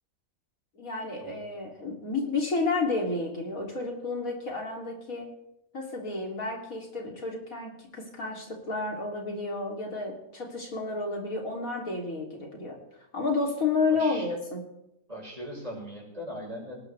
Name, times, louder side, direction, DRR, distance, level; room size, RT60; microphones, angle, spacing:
voice 1, 0.8-5.3 5.7-12.8 13.1-14.6, left 3 dB, 75° left, -1 dB, 3.9 m, -31 dB
voice 2, 13.9-14.3 15.1-16.8, equal, 25° right, -4 dB, 6.1 m, -40 dB
19.0 x 19.0 x 3.5 m, 0.84 s
omnidirectional pair, 1.5 m